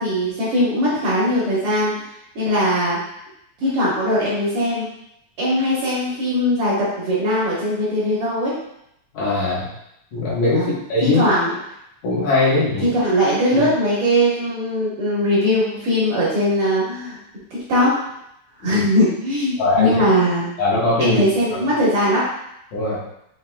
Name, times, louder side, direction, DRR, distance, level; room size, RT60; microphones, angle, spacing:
voice 1, 0.0-1.9 2.3-3.0 3.6-4.9 5.4-8.5 10.5-10.7 11.0-11.5 12.8-17.2 17.5-17.9 18.6-20.5 21.0-22.2, equal, 60° right, -8 dB, 1.6 m, -20 dB
voice 2, 9.1-9.7 10.1-11.2 12.0-12.9 13.5-13.6 18.6-18.8 19.6-20.0 20.6-21.2 22.7-23.0, left 2 dB, 75° left, -7 dB, 2.6 m, -20 dB
5.9 x 2.8 x 2.2 m, 0.77 s
omnidirectional pair, 3.4 m